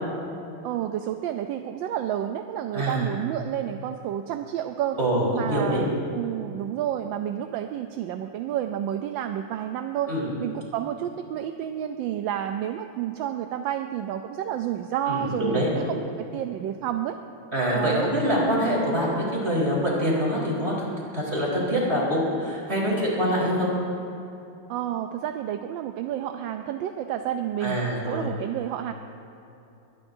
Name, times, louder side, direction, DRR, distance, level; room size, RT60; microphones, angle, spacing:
voice 1, 0.6-5.0 5.3-10.1 10.4-17.2 17.7-18.1 24.7-27.8 28.1-28.9, right 11 dB, 75° right, 6 dB, 1.3 m, -30 dB
voice 2, 2.7-3.1 5.0-5.9 10.1-10.3 15.1-15.7 17.5-20.9 21.1-23.7 27.6-28.3, equal, 30° right, -4 dB, 4.4 m, -25 dB
22.5 x 19.0 x 2.7 m, 2.9 s
omnidirectional pair, 2.2 m